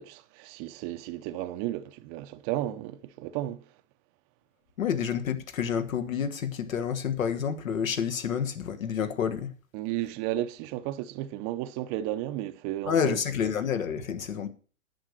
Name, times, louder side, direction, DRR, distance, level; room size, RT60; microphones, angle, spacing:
voice 1, 0.0-3.7 9.7-13.2, right 14 dB, 30° right, 0.5 m, -33 dB
voice 2, 4.8-9.5 12.9-14.5, left 7 dB, 85° left, 1.6 m, -29 dB
10.5 x 6.9 x 6.4 m
hypercardioid pair, 130°, 39 cm